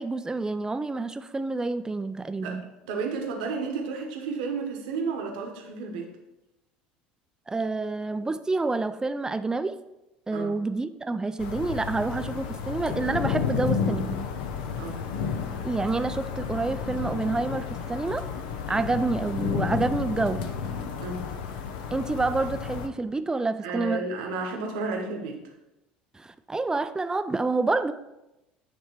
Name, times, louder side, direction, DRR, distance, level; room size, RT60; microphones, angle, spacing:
voice 1, 0.0-2.7 7.5-9.8 10.3-14.2 15.6-18.3 18.7-20.5 21.9-24.1 26.1-27.9, right 3 dB, 15° right, 11 dB, 0.4 m, -28 dB
voice 2, 2.4-6.1 10.3-10.5 14.8-15.0 21.0-21.2 23.6-25.4, right 4 dB, 70° right, 3 dB, 1.2 m, -32 dB
sound 1, 11.4-22.9, left 6 dB, 70° left, 0.6 m, -31 dB
9.7 x 3.3 x 4.5 m, 0.94 s
figure-of-eight pair, 65°, 5 cm